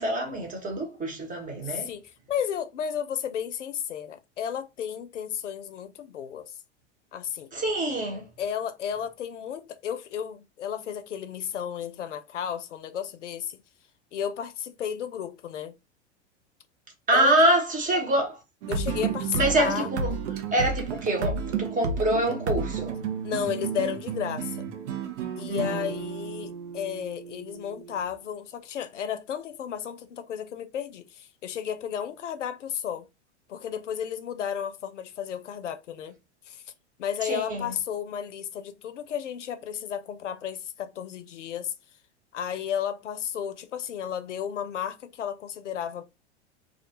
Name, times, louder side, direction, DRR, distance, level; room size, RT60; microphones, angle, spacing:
voice 1, 0.0-1.9 7.5-8.3 17.1-18.4 19.4-20.1 20.5-23.0 25.5-25.8 37.2-37.7, right 1 dB, 20° right, 1.0 m, -25 dB
voice 2, 1.6-6.5 7.1-7.5 8.4-13.6 14.1-15.7 17.1-17.5 18.7-19.9 23.2-24.6 25.4-33.1 33.5-36.2 36.5-36.6 37.0-41.7 42.3-46.0, left 8 dB, 90° left, 0.5 m, -33 dB
sound 1, 18.6-28.0, right 5 dB, 70° right, 0.7 m, -32 dB
2.4 x 2.2 x 2.7 m
hypercardioid pair, 95°, 35 cm